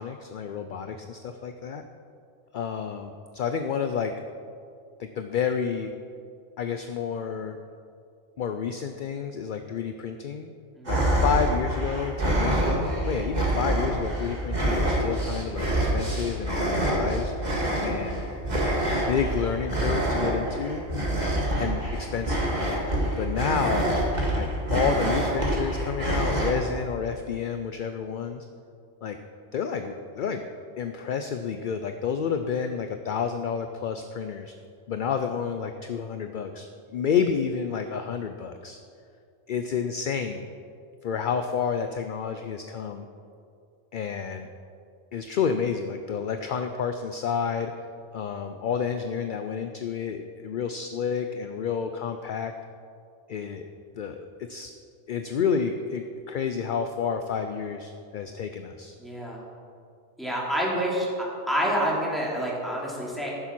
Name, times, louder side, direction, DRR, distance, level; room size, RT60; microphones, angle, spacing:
voice 1, 0.0-1.8 2.5-4.1 5.0-5.9 6.6-7.6 8.4-10.5 10.9-17.3 17.8-18.3 18.9-20.8 21.6-22.5 23.2-23.9 24.3-28.5 29.0-29.2 29.5-30.4 30.8-34.5 34.9-38.8 39.5-40.4 41.0-43.1 43.9-44.5 45.1-47.7 48.1-52.6 53.3-53.6 53.9-54.7 55.1-58.9, left 6 dB, 55° left, 7 dB, 0.6 m, -30 dB
sound 1, 10.8-26.5, right 1 dB, 35° right, 2.0 m, -26 dB
voice 2, 23.0-23.3 59.0-59.4 60.2-61.1 61.5-63.3, equal, ahead, -5 dB, 2.7 m, -28 dB
14.5 x 7.2 x 6.0 m, 2.4 s
omnidirectional pair, 1.3 m